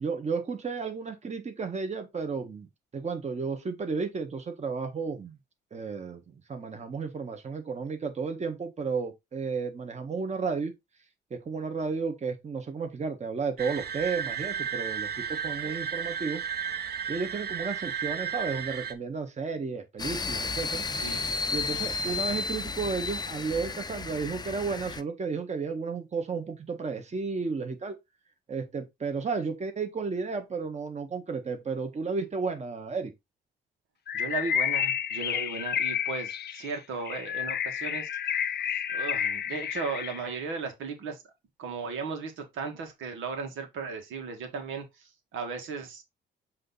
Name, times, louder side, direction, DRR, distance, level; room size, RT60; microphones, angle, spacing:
voice 1, 0.0-2.7 2.9-5.4 5.7-6.2 6.5-10.7 11.3-16.4 17.1-20.8 21.3-28.0 28.5-33.1, right 5 dB, 35° right, 1.6 m, -33 dB
sound 1, 13.6-18.9, right 7 dB, 55° right, 0.9 m, -33 dB
sound 2, 20.0-25.0, left 4 dB, 20° left, 0.6 m, -33 dB
Bird, 34.1-40.4, left 9 dB, 55° left, 0.7 m, -30 dB
voice 2, 34.1-38.4 38.7-41.2 41.6-46.0, right 4 dB, 80° right, 1.7 m, -36 dB
7.6 x 3.0 x 4.1 m
cardioid pair, 90°, 20 cm